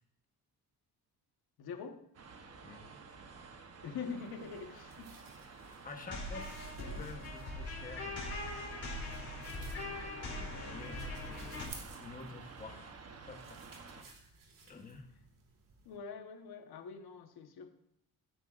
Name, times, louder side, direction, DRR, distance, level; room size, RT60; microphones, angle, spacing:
voice 1, 1.6-2.0 3.8-5.2 15.8-17.7, left 5 dB, 75° left, 6 dB, 1.3 m, -44 dB
sound 1, 2.1-14.0, right 4 dB, 40° right, 1.0 m, -52 dB
voice 2, 2.6-3.5 5.5-8.3 10.3-13.0 13.3-13.6 13.9-14.0 14.7-15.1, left 3 dB, 20° left, 4 dB, 1.1 m, -50 dB
sound 2, 4.2-16.0, right 4 dB, 55° right, 1.9 m, -57 dB
sound 3, 6.1-11.7, left 2 dB, 40° left, 4.2 m, -41 dB
16.0 x 9.3 x 2.5 m, 0.76 s
wide cardioid pair, 165°, 38 cm